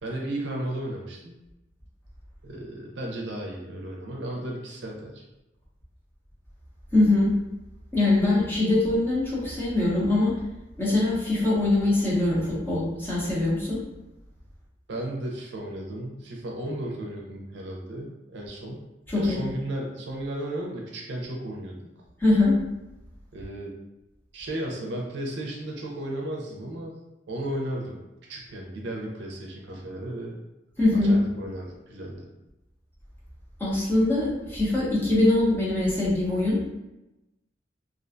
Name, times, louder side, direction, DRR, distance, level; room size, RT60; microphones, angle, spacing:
voice 1, 0.0-1.3 2.4-5.2 14.9-18.8 19.1-21.7 23.3-23.7 24.3-27.0 27.3-28.0 28.3-30.4 30.9-32.3, right 1 dB, 65° right, -1 dB, 0.5 m, -34 dB
voice 2, 6.9-7.3 7.9-10.3 10.8-13.8 19.1-19.4 22.2-22.5 30.8-31.1 33.6-36.6, left 2 dB, 10° left, -7 dB, 0.7 m, -22 dB
2.5 x 2.2 x 2.5 m, 0.97 s
head